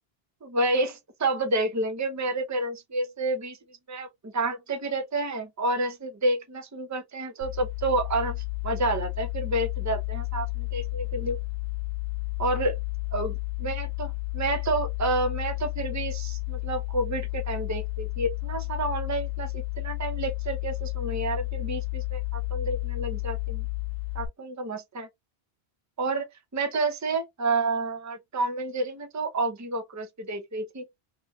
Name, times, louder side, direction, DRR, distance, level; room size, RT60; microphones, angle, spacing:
voice 1, 0.4-3.6 3.9-11.4 12.4-12.8 13.1-23.6 24.1-25.1 26.0-30.9, right 2 dB, 20° right, 0.6 m, -29 dB
sound 1, 7.4-24.3, left 25 dB, 80° left, 1.1 m, -32 dB
3.8 x 3.0 x 2.3 m
omnidirectional pair, 1.1 m